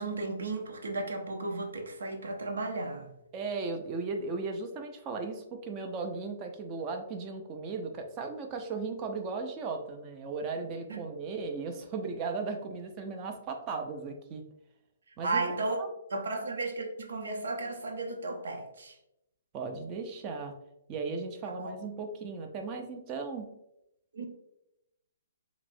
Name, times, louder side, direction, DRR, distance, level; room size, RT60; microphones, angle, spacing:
voice 1, 0.0-3.1 10.9-11.0 15.2-15.8 16.1-19.0 21.4-21.7 24.1-24.3, right 3 dB, 90° right, 2 dB, 0.7 m, -34 dB
voice 2, 3.3-14.4 15.2-15.4 15.8-15.9 19.5-20.5 20.9-23.5, right 4 dB, 20° right, 4 dB, 0.4 m, -36 dB
5.8 x 2.0 x 2.6 m, 0.86 s
hypercardioid pair, 170°, 0 cm